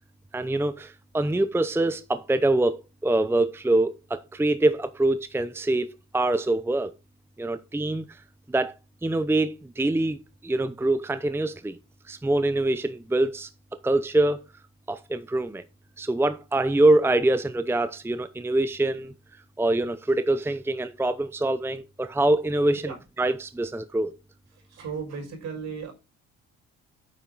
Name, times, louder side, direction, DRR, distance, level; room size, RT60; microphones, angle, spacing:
voice 1, 0.3-5.9 6.1-6.9 7.4-8.0 8.5-8.7 9.0-10.2 10.4-11.8 12.1-13.5 13.8-14.4 14.9-15.6 16.0-19.1 19.6-24.1, right 2 dB, 10° right, 0.7 m, -24 dB
voice 2, 24.7-25.9, right 6 dB, 60° right, 6.2 m, -35 dB
9.3 x 7.3 x 4.0 m
supercardioid pair, 65°, 30 cm